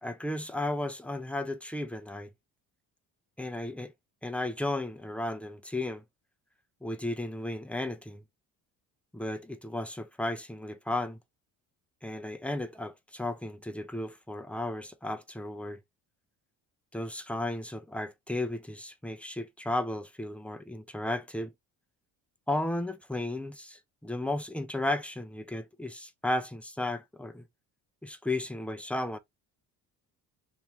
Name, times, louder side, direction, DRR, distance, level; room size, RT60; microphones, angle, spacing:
voice 1, 0.0-2.3 3.4-3.9 4.2-6.0 6.8-8.2 9.1-11.2 12.0-15.8 16.9-21.5 22.5-27.4 28.0-29.2, left 1 dB, 5° left, 0.8 m, -34 dB
2.9 x 2.9 x 3.4 m
supercardioid pair, 65°, 42 cm